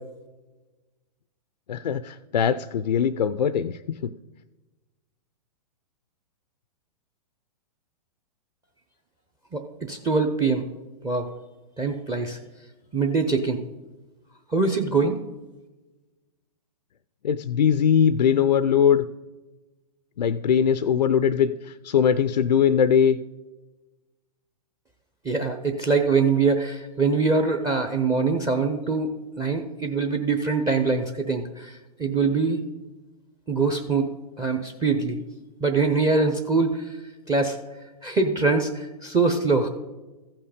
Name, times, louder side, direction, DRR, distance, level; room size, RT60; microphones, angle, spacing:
voice 1, 1.7-3.7 4.0-4.1 17.2-19.0 20.2-23.2, left 8 dB, 90° left, 13 dB, 0.5 m, -21 dB
voice 2, 9.5-10.7 11.0-11.3 11.8-12.4 12.9-13.6 14.5-15.2 25.2-32.6 33.5-35.2 35.6-37.0 37.3-37.6 38.0-39.7, right 4 dB, 15° right, 8 dB, 0.7 m, -23 dB
15.0 x 5.8 x 4.9 m, 1.1 s
hypercardioid pair, 125°, 21 cm